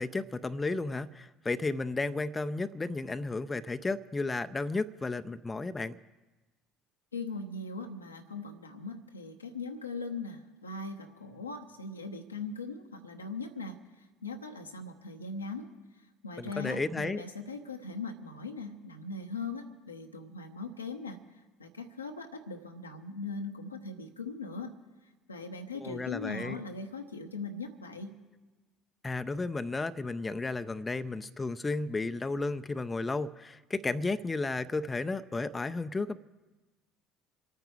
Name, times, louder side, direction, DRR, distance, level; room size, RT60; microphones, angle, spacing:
voice 1, 0.0-6.0 16.4-17.2 25.8-26.6 29.0-36.2, left 3 dB, 20° left, 11 dB, 0.6 m, -33 dB
voice 2, 7.1-13.8 14.2-15.7 16.2-21.2 21.6-24.7 25.3-28.2, left 3 dB, 90° left, 4 dB, 0.9 m, -40 dB
26.5 x 9.2 x 4.9 m, 1.2 s
figure-of-eight pair, 60°, 0 cm